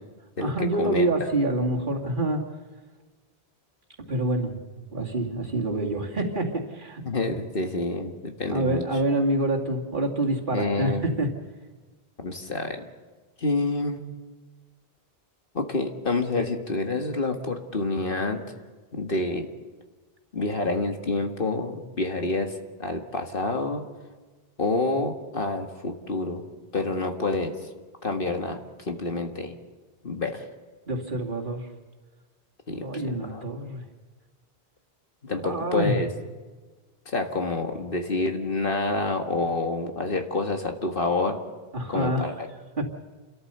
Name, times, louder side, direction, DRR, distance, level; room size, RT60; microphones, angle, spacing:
voice 1, 0.4-2.4 4.1-7.0 8.5-11.3 30.9-31.7 32.7-33.8 35.4-36.0 41.7-42.3 42.8-42.9, right 1 dB, 50° right, 0 dB, 2.6 m, -26 dB
voice 2, 7.1-8.8 10.5-11.2 12.2-12.8 13.4-14.0 15.5-18.4 18.9-19.5 20.3-22.5 22.8-23.8 24.6-26.4 26.7-27.7 28.0-28.6 28.9-29.5 30.0-30.4 32.7-33.5 35.2-36.1 37.1-41.4 41.9-42.5, left 2 dB, 55° left, 5 dB, 1.9 m, -28 dB
29.5 x 13.5 x 6.8 m, 1.3 s
omnidirectional pair, 1.1 m